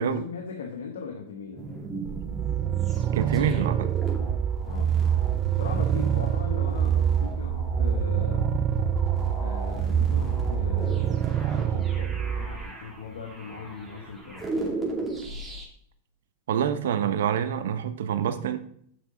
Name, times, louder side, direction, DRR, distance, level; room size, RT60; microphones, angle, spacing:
voice 1, 0.0-1.7 4.6-5.0 5.6-8.5 9.4-14.9, left 5 dB, 85° left, 4 dB, 1.2 m, -39 dB
sound 1, 1.6-15.7, right 5 dB, 10° right, 2.4 m, -30 dB
sound 2, 2.1-12.7, right 10 dB, 35° right, 0.3 m, -28 dB
voice 2, 3.1-3.9 16.5-18.6, right 8 dB, 75° right, 10 dB, 0.9 m, -26 dB
7.1 x 6.9 x 3.8 m, 0.65 s
hypercardioid pair, 125°, 0 cm